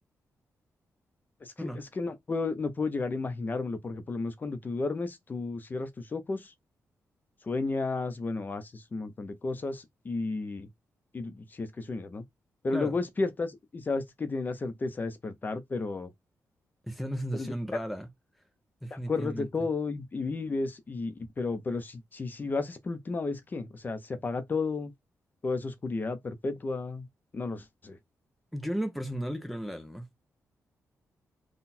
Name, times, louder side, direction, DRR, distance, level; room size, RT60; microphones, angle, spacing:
voice 1, 1.4-6.5 7.4-10.7 11.1-12.2 12.6-16.1 17.3-17.8 18.9-24.9 25.4-27.1 27.3-28.0, left 3 dB, 30° left, 0.7 m, -33 dB
voice 2, 16.8-18.1 18.8-19.5 28.5-30.1, equal, ahead, 0.6 m, -34 dB
4.0 x 2.4 x 4.2 m
cardioid pair, 110°, 6 cm